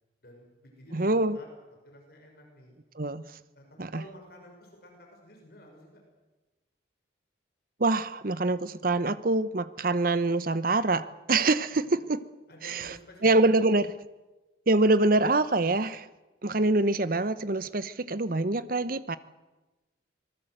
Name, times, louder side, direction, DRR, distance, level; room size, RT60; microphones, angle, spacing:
voice 1, 0.2-1.5 1.8-2.8 3.5-6.0 12.5-13.5, left 1 dB, 50° left, 1 dB, 6.2 m, -52 dB
voice 2, 0.9-1.4 3.0-3.3 3.8-4.0 7.8-12.2 12.6-12.9 13.2-13.9 14.7-16.1 16.4-19.2, right 2 dB, 45° right, 14 dB, 0.8 m, -25 dB
25.5 x 18.5 x 7.9 m, 1.1 s
head